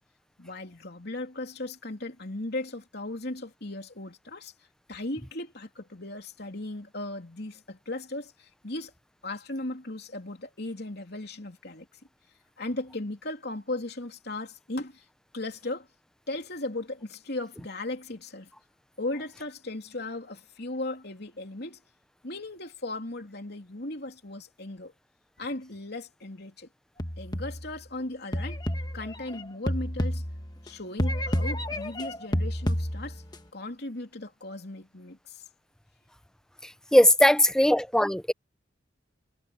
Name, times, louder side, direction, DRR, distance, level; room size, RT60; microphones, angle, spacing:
voice 1, 0.4-4.5 4.9-8.9 9.2-11.9 12.6-15.0 15.3-15.9 16.3-18.5 19.0-21.8 22.2-24.9 25.4-26.7 27.2-28.6 28.9-30.2 30.6-33.2 33.5-35.4, left 2 dB, 55° left, 3.3 m, -37 dB
sound 1, 27.0-27.8 28.3-30.7 31.0-33.3, equal, 20° left, 1.5 m, -30 dB
voice 2, 36.6-38.3, left 1 dB, 5° left, 0.7 m, -20 dB
head